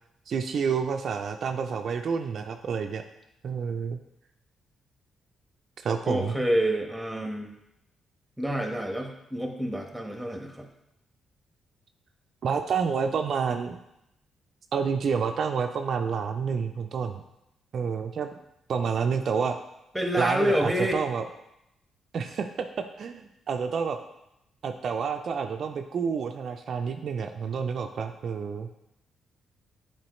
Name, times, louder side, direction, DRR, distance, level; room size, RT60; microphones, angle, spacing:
voice 1, 0.3-3.0 3.4-4.0 5.8-6.3 12.4-13.8 14.7-17.2 17.7-18.3 18.7-19.6 20.2-21.2 22.1-22.7 23.0-24.0 24.6-28.7, right 6 dB, 60° right, 6 dB, 0.4 m, -29 dB
voice 2, 6.0-7.5 8.4-10.7 19.9-20.9, equal, 5° right, 3 dB, 1.2 m, -28 dB
7.6 x 4.5 x 3.1 m, 0.85 s
supercardioid pair, 60°, 0 cm